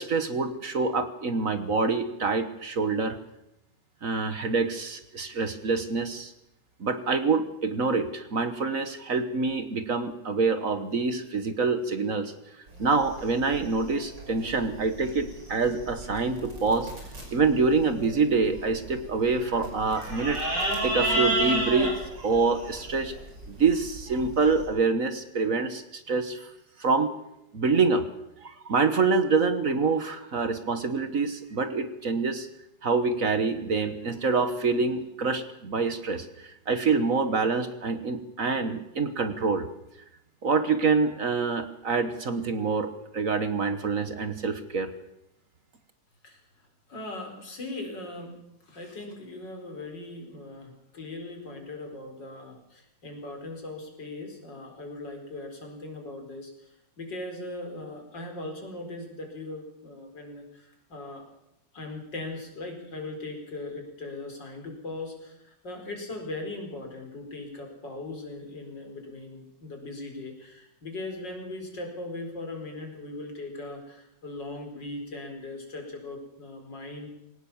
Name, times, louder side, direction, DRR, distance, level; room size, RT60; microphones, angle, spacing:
voice 1, 0.0-3.2 4.0-6.3 6.8-12.3 12.8-16.9 17.3-23.1 23.5-26.5 26.8-27.1 27.5-28.0 28.4-32.5 32.8-39.7 40.4-44.9, right 4 dB, 50° right, 10 dB, 1.6 m, -26 dB
sound 1, 12.7-24.6, right 1 dB, 70° right, 6.3 m, -33 dB
voice 2, 46.2-48.4 48.6-61.2 61.7-77.1, left 2 dB, 70° left, 3 dB, 5.0 m, -39 dB
21.5 x 18.5 x 7.2 m, 0.86 s
omnidirectional pair, 2.0 m